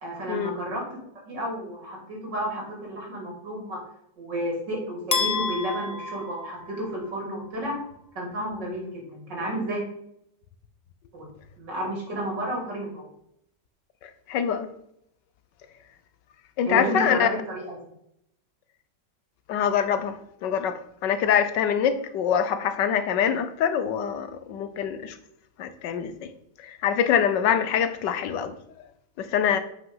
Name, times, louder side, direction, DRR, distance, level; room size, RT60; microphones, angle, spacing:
voice 1, 0.0-3.8 4.2-7.8 8.2-9.8 11.1-11.3 11.6-13.1 16.7-17.7, right 1 dB, 90° right, 3.8 m, -31 dB
sound 1, 5.1-7.2, left 4 dB, 30° left, 0.8 m, -30 dB
voice 2, 14.0-14.7 16.6-17.3 19.5-25.2 25.6-26.3 26.6-28.5 29.2-29.6, left 8 dB, 85° left, 1.5 m, -25 dB
8.4 x 5.4 x 5.6 m
omnidirectional pair, 1.9 m